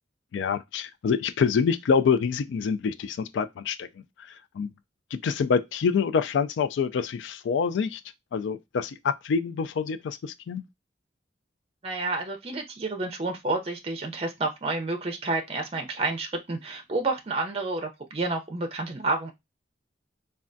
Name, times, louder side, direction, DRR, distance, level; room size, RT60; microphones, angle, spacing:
voice 1, 0.3-3.9 4.6-4.7 5.1-8.0 8.3-10.6, left 6 dB, 80° left, 0.3 m, -26 dB
voice 2, 11.8-19.3, right 3 dB, 30° right, 0.5 m, -30 dB
3.3 x 2.3 x 2.5 m
head